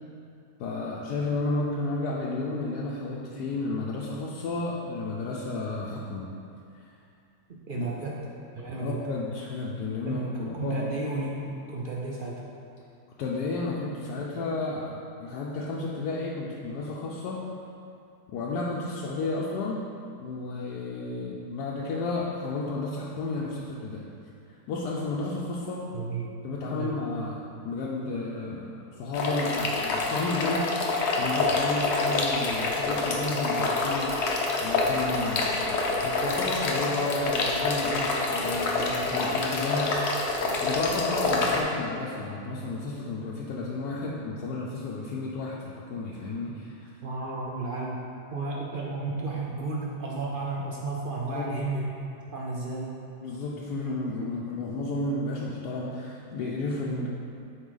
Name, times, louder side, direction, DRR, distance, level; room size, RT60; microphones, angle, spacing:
voice 1, 0.6-6.3 7.8-7.9 8.7-10.9 13.2-17.4 18.3-19.8 20.2-24.1 24.7-25.9 26.4-30.8 31.2-34.3 34.6-40.2 40.6-46.9 51.2-51.6 53.2-57.1, left 2 dB, 80° left, -4 dB, 1.2 m, -32 dB
voice 2, 7.5-8.3 8.6-9.0 10.1-12.4 25.9-26.3 26.6-26.9 47.0-51.9 52.3-53.0, right 3 dB, 90° right, -3 dB, 0.4 m, -33 dB
sound 1, 29.1-41.6, left 3 dB, 55° left, 0.8 m, -27 dB
7.9 x 4.7 x 3.9 m, 2.5 s
omnidirectional pair, 1.7 m